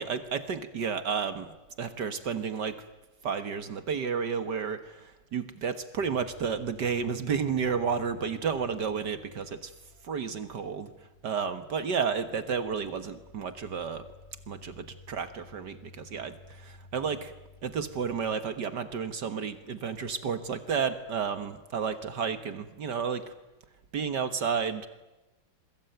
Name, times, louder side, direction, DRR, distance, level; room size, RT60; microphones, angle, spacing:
voice 1, 0.0-2.8 3.2-9.7 10.0-14.1 14.5-17.3 17.6-23.3 23.9-24.9, right 6 dB, 60° right, 11 dB, 1.9 m, -32 dB
sound 1, 5.9-18.3, left 3 dB, 15° left, 5.6 m, -54 dB
27.5 x 22.5 x 9.2 m, 1.0 s
omnidirectional pair, 2.1 m